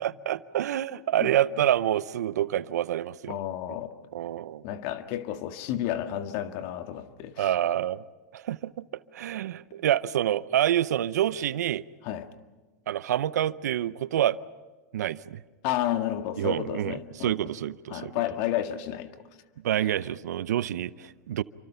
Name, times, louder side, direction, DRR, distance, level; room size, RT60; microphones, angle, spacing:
voice 1, 0.0-3.4 4.1-4.6 7.4-8.0 8.3-8.9 9.1-11.8 12.9-14.4 14.9-15.4 16.4-18.1 19.6-21.4, right 11 dB, 85° right, 0.7 m, -27 dB
voice 2, 3.3-3.9 4.6-7.5 12.0-12.3 15.6-17.3 17.9-19.1, left 12 dB, 55° left, 1.8 m, -31 dB
28.0 x 25.0 x 5.7 m
hypercardioid pair, 115°, 9 cm